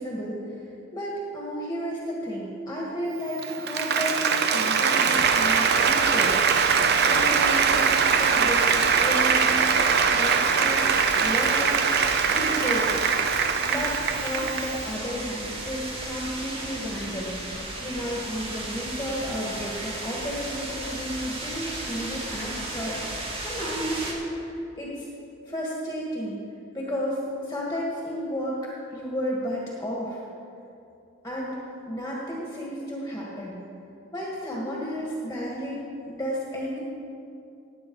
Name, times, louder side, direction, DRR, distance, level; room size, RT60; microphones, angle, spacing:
voice 1, 0.0-11.8 12.3-12.9 13.6-25.1 25.4-26.4 26.7-30.2 31.2-33.6 34.1-35.8 36.1-36.8, equal, 15° left, -4 dB, 1.6 m, -32 dB
Applause, 3.3-14.8, right 6 dB, 55° right, 0.7 m, -22 dB
sound 1, 5.1-24.1, right 2 dB, 30° right, 2.0 m, -35 dB
18.5 x 8.0 x 4.7 m, 2.6 s
head